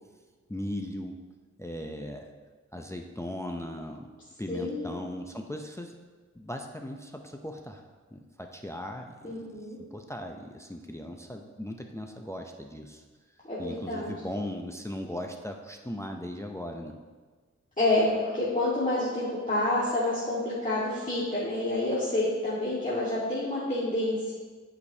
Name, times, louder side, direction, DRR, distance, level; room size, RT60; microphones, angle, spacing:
voice 1, 0.5-1.2 1.6-2.3 2.7-4.1 4.4-5.9 6.4-7.8 8.1-13.0 13.6-17.0, left 1 dB, 10° left, 3 dB, 0.5 m, -38 dB
voice 2, 4.5-5.0 9.2-9.8 13.4-14.1 17.8-24.3, left 2 dB, 25° left, -9 dB, 1.6 m, -28 dB
11.0 x 5.1 x 2.7 m, 1.4 s
wide cardioid pair, 80°, 29 cm